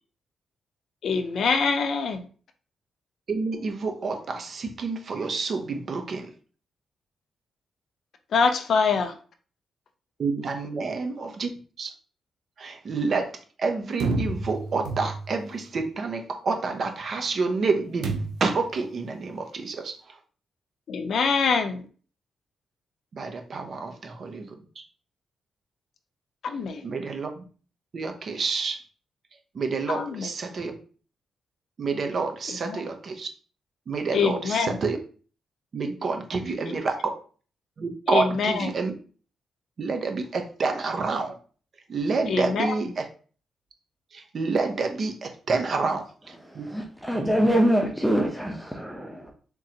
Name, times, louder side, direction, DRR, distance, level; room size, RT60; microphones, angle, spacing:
voice 1, 1.0-2.2 8.3-9.1 20.9-21.9 26.4-26.9 29.9-30.3 32.7-32.8 34.1-34.8 36.6-36.7 38.1-38.7 42.3-42.7 47.5-47.7, left 5 dB, 65° left, 0.5 m, -24 dB
voice 2, 3.3-6.3 10.2-11.5 11.8-11.9 12.6-20.2 23.1-24.8 26.8-27.4 27.9-28.8 29.5-30.8 31.8-33.3 33.9-35.0 35.7-37.2 37.8-38.9 39.8-41.4 41.9-43.1 44.1-46.7, right 4 dB, 55° right, 0.7 m, -28 dB
sound 1, 14.0-15.5 18.0-18.6, right 3 dB, 90° right, 0.6 m, -30 dB
voice 3, 46.7-49.3, equal, ahead, 0.7 m, -24 dB
3.7 x 2.9 x 2.8 m
cardioid pair, 85°, 0 cm